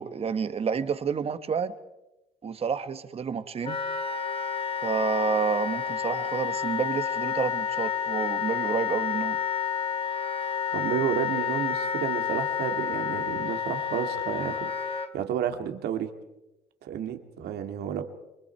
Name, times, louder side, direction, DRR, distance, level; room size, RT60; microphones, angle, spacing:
voice 1, 0.0-1.7 2.4-3.8 4.8-9.4, right 6 dB, 35° right, 12 dB, 1.4 m, -29 dB
Wind instrument woodwind instrument, 3.6-15.1, left 7 dB, 35° left, 1.6 m, -30 dB
voice 2, 10.7-16.1 16.8-18.0, right 9 dB, 75° right, 7 dB, 2.3 m, -31 dB
28.0 x 24.0 x 4.6 m, 0.98 s
cardioid pair, 110°, 17 cm